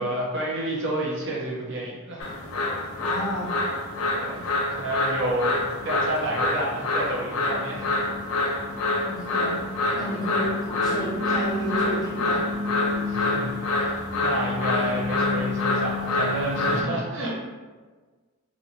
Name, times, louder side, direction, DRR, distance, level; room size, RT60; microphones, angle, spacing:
voice 1, 0.0-2.3 4.1-7.9 8.3-8.5 10.2-10.5 13.1-17.4, right 1 dB, 55° right, -5 dB, 0.8 m, -30 dB
sound 1, 2.2-16.8, left 2 dB, 90° left, 0.5 m, -26 dB
voice 2, 3.0-3.5 9.0-9.6 9.9-12.4, equal, 15° left, -6 dB, 0.6 m, -32 dB
2.7 x 2.7 x 2.8 m, 1.4 s
head